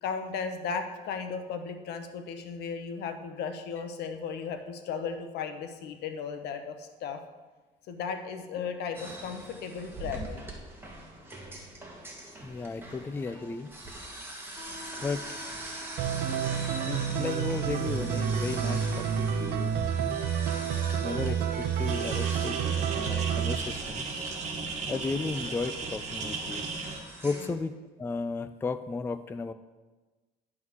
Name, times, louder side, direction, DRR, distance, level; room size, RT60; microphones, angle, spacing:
voice 1, 0.0-7.2 7.9-10.5 20.8-21.2 24.4-24.5 27.3-27.5, left 6 dB, 75° left, 7 dB, 0.9 m, -36 dB
sound 1, 8.9-27.5, right 1 dB, 15° right, 1.6 m, -43 dB
voice 2, 12.4-13.7 15.0-15.5 16.8-20.2 21.0-24.1 24.9-26.6 27.2-29.5, left 4 dB, 15° left, 11 dB, 0.3 m, -35 dB
sound 2, 16.0-23.6, right 8 dB, 70° right, 0.7 m, -29 dB
sound 3, 21.8-27.0, right 4 dB, 45° right, 1.5 m, -36 dB
11.0 x 3.7 x 6.2 m, 1.2 s
cardioid pair, 110°, 17 cm